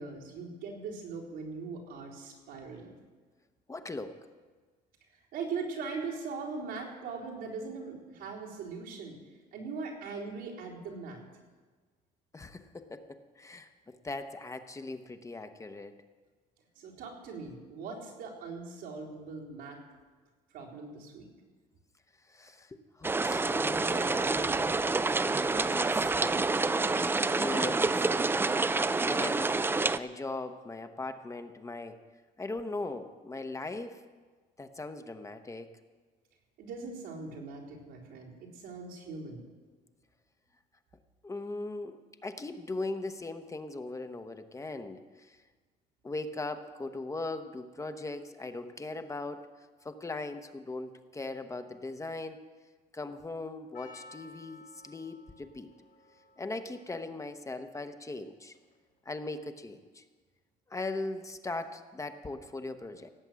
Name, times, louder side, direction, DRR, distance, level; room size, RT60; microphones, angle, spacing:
voice 1, 0.0-3.0 5.3-9.2 9.5-11.2 16.8-19.8 20.5-21.3 36.6-39.5, right 4 dB, 90° right, -4 dB, 4.0 m, -40 dB
voice 2, 3.7-4.2 12.3-16.0 22.3-25.1 25.4-26.4 27.0-28.2 29.1-29.7 29.9-32.0 32.4-34.0 34.6-35.7 41.2-45.4 46.0-49.5 49.8-52.4 52.9-55.7 56.4-58.5 59.1-60.0 60.7-63.1, left 2 dB, 20° left, 8 dB, 0.9 m, -39 dB
sound 1, 23.0-30.0, right 3 dB, 15° right, 0.4 m, -28 dB
Percussion, 53.7-59.0, left 3 dB, 85° left, 3.9 m, -57 dB
17.5 x 7.9 x 7.5 m, 1.4 s
cardioid pair, 110°, 17 cm